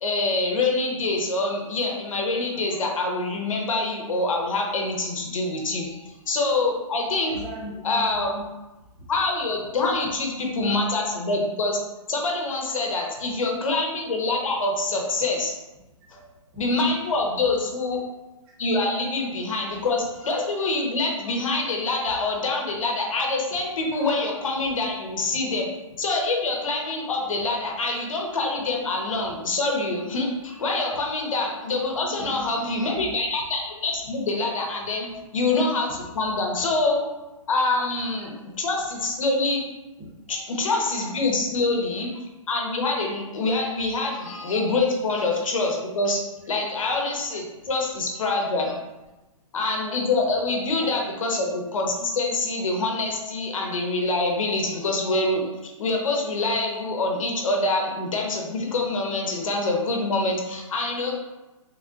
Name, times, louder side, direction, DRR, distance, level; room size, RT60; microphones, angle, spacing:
voice 1, 0.0-7.4 7.8-8.3 9.1-11.8 12.1-15.5 16.6-18.0 18.6-25.7 26.0-35.1 35.3-37.0 37.5-39.6 40.3-46.2 46.5-48.7 49.5-55.5 55.8-61.2, left 2 dB, 70° left, 0 dB, 1.0 m, -25 dB
voice 2, 7.2-8.5 8.9-9.1 13.3-13.4 16.0-16.6 32.0-33.1 36.0-36.1 38.2-38.6 40.0-40.3 47.6-47.7 50.8-50.9, right 1 dB, 5° right, -5 dB, 0.3 m, -39 dB
3.8 x 3.5 x 2.4 m, 1.1 s
hypercardioid pair, 170°, 18 cm